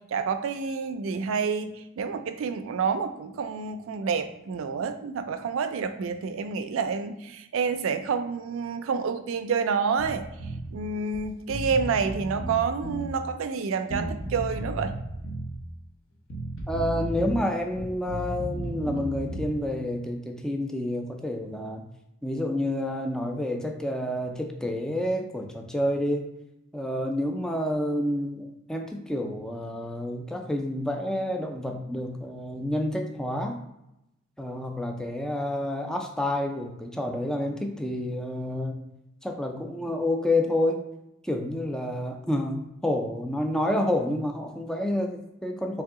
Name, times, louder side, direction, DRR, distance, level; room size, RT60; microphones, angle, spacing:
voice 1, 0.1-1.7 2.0-10.2 10.7-14.9, right 5 dB, 80° right, 9 dB, 0.4 m, -28 dB
Bass guitar, 10.0-10.7 11.1-11.2 11.5-13.1 13.9-15.5 16.3-17.4 17.7-19.6, right 1 dB, 75° left, 0.8 m, -34 dB
voice 2, 16.7-21.9 22.2-26.3 26.7-33.6 34.4-38.8 39.2-40.8 41.2-45.8, left 1 dB, 5° left, 2 dB, 0.3 m, -29 dB
3.4 x 2.8 x 3.6 m, 0.88 s
head